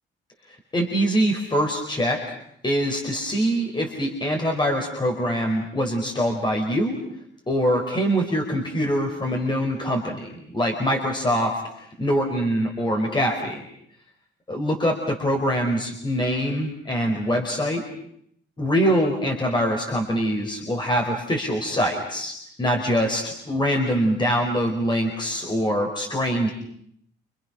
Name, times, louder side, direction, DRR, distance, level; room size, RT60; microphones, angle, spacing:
voice 1, 0.7-2.3 2.6-6.9 7.5-13.6 14.5-17.8 18.6-26.5, equal, 25° left, 2 dB, 4.9 m, -24 dB
29.5 x 28.5 x 6.3 m, 0.72 s
cardioid pair, 90°, 20 cm